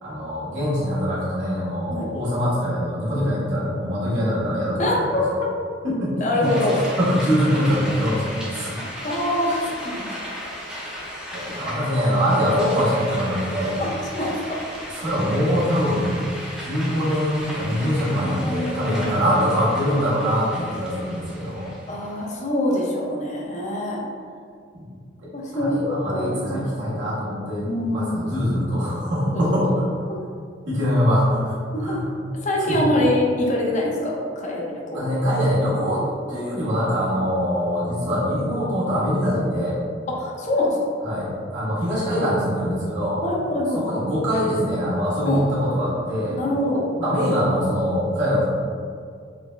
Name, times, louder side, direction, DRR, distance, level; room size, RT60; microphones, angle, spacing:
voice 1, 0.0-5.2 5.8-6.1 6.4-6.5 7.0-8.8 11.3-13.8 14.9-16.2 16.6-21.7 25.2-29.9 30.7-32.0 32.7-32.8 34.9-36.0 36.3-39.8 41.0-43.2 43.7-46.4 47.0-48.4, equal, 85° right, -11 dB, 1.5 m, -23 dB
voice 2, 4.8-5.2 6.2-6.8 9.0-10.1 11.6-11.7 13.8-14.6 17.0-17.1 18.2-19.3 21.9-24.0 25.3-26.7 27.7-28.6 29.3-29.8 30.1-30.2 31.7-32.0 32.4-35.2 40.1-40.8 43.2-44.0 45.2-45.4 46.3-46.9, left 1 dB, 40° left, -3 dB, 0.6 m, -25 dB
sound 1, 6.4-22.2, equal, 5° right, 0.5 m, -36 dB
4.0 x 2.0 x 3.2 m, 2.2 s
head